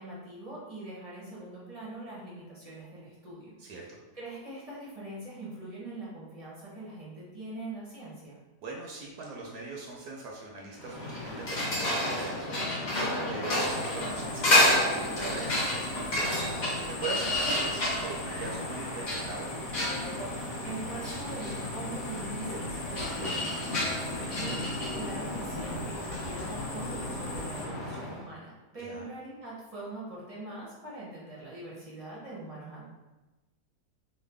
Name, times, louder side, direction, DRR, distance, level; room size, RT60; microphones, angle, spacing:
voice 1, 0.0-3.5 4.1-8.4 20.6-23.9 24.3-32.8, right 2 dB, 35° right, -7 dB, 0.6 m, -42 dB
voice 2, 8.6-12.6 13.3-16.3 16.6-19.5 24.2-24.4 28.8-29.1, right 3 dB, 75° right, -2 dB, 1.1 m, -40 dB
sound 1, 10.8-28.2, left 1 dB, 50° left, 0.5 m, -31 dB
sound 2, 13.6-27.6, left 2 dB, 70° left, 1.2 m, -44 dB
3.1 x 2.1 x 3.3 m, 1.1 s
omnidirectional pair, 1.7 m